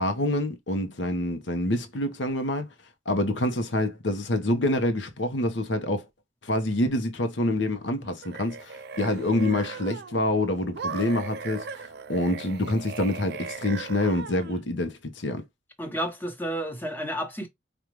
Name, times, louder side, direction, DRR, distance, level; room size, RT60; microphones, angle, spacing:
voice 1, 0.0-2.7 3.1-6.1 6.4-15.4, left 1 dB, 70° left, 0.9 m, -27 dB
sound 1, 8.0-10.2 10.7-14.6, right 5 dB, 60° right, 0.5 m, -38 dB
voice 2, 15.8-17.5, equal, 10° left, 1.0 m, -31 dB
5.2 x 2.4 x 3.0 m
head